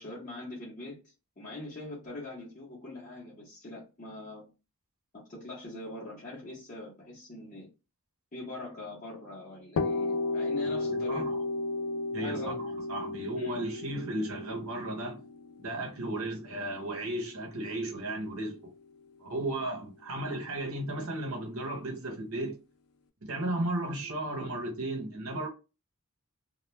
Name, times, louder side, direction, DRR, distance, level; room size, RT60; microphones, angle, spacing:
voice 1, 0.0-4.4 5.1-7.7 8.3-11.4 12.2-12.6 13.4-13.6, left 2 dB, 35° left, 0.8 m, -42 dB
sound 1, 9.8-17.5, left 3 dB, 80° left, 0.4 m, -33 dB
voice 2, 10.8-11.4 12.1-15.2 15.6-18.7 19.2-22.6 23.2-25.5, right 1 dB, 70° right, 0.8 m, -35 dB
2.3 x 2.2 x 3.0 m
head